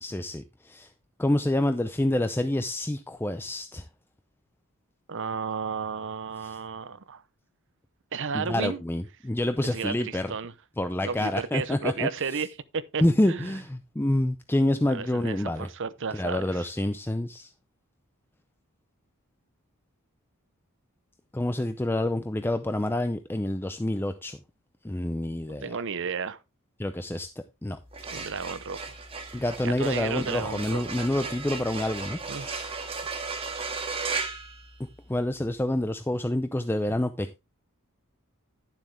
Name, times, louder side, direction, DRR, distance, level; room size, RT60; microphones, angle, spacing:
voice 1, 0.0-0.9 1.2-3.8 6.4-6.6 8.3-10.3 10.8-12.1 13.0-15.7 16.1-17.5 21.3-24.4 24.8-25.8 26.8-27.3 27.6-27.8 29.3-32.7 35.1-37.4, left 1 dB, 10° left, 0.5 m, -27 dB
voice 2, 5.1-7.2 8.1-8.8 9.7-10.5 11.0-12.5 12.7-13.5 14.8-16.6 25.6-26.4 28.1-28.9 29.6-30.9 32.3-32.5, right 5 dB, 60° right, 0.8 m, -33 dB
sound 1, 27.8-35.3, right 4 dB, 25° right, 1.8 m, -36 dB
11.5 x 7.2 x 3.3 m
head